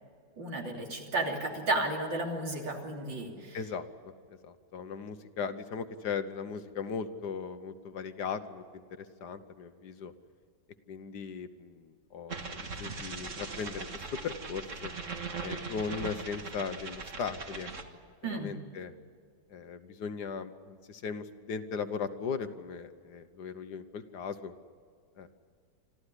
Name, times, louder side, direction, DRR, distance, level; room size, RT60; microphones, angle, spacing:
voice 1, 0.4-3.6 18.2-18.5, right 2 dB, 80° right, 1 dB, 3.8 m, -33 dB
voice 2, 3.5-10.1 10.9-14.9 15.4-17.7 18.2-18.9 19.5-24.5 25.1-25.3, left 6 dB, 65° left, 10 dB, 1.5 m, -38 dB
sound 1, 12.3-17.8, right 4 dB, 45° right, 1.9 m, -40 dB
26.0 x 14.5 x 9.9 m, 2.1 s
omnidirectional pair, 2.0 m